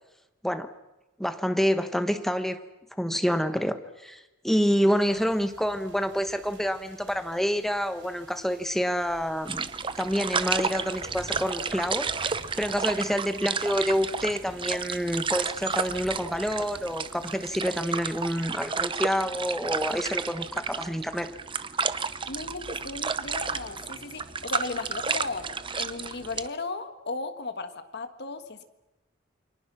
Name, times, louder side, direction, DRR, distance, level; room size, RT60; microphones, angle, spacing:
voice 1, 1.2-2.6 3.0-9.7 10.0-21.3, equal, ahead, 9 dB, 1.1 m, -28 dB
sound 1, 4.9-18.5, right 2 dB, 60° right, 4.6 m, -51 dB
sound 2, 9.5-26.5, right 5 dB, 25° right, 0.8 m, -32 dB
voice 2, 22.3-28.6, left 3 dB, 55° left, 8 dB, 1.7 m, -36 dB
29.0 x 23.0 x 6.3 m, 1.0 s
head